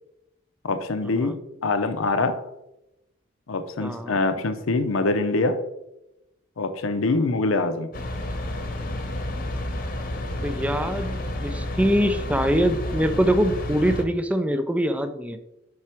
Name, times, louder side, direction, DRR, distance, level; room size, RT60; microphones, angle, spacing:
voice 1, 0.6-1.3 1.6-2.4 3.5-5.6 6.6-7.9, left 3 dB, 90° left, 9 dB, 0.6 m, -24 dB
voice 2, 3.8-4.2 7.1-7.2 10.4-11.2 11.4-15.4, equal, 5° right, 9 dB, 0.4 m, -23 dB
sound 1, 7.9-14.0, left 1 dB, 45° left, 0.9 m, -30 dB
6.0 x 4.7 x 4.3 m, 0.91 s
head